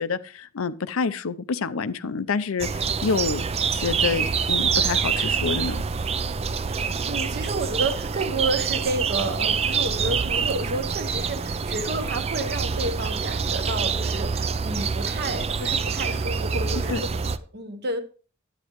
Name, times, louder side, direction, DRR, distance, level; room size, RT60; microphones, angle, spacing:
voice 1, 0.0-3.4 3.7-5.8 16.9-17.0, left 5 dB, 75° left, 0.6 m, -27 dB
sound 1, 2.6-17.4, right 5 dB, 30° right, 0.4 m, -26 dB
voice 2, 6.7-18.0, right 2 dB, 50° right, 1.1 m, -30 dB
11.5 x 8.9 x 3.0 m
head